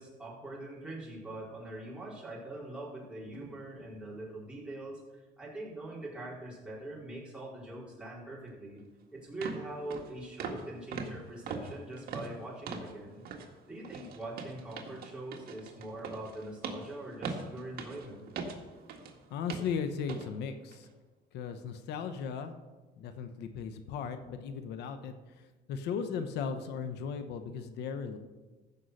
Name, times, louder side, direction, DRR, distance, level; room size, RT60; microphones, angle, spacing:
voice 1, 0.0-8.8 9.1-13.2 13.7-18.3, right 2 dB, 5° right, -6 dB, 4.3 m, -43 dB
sound 1, 8.8-8.9 9.4-9.6 9.9-10.1 10.4-10.7 10.9-13.0 13.3-13.5 13.8-19.1 19.5-19.7 20.1-20.3 20.7-20.9, right 4 dB, 65° right, 1.7 m, -41 dB
voice 2, 19.3-20.9 21.3-22.5 23.0-28.2, left 6 dB, 80° left, 8 dB, 1.0 m, -37 dB
15.0 x 5.6 x 6.4 m, 1.2 s
cardioid pair, 110°, 17 cm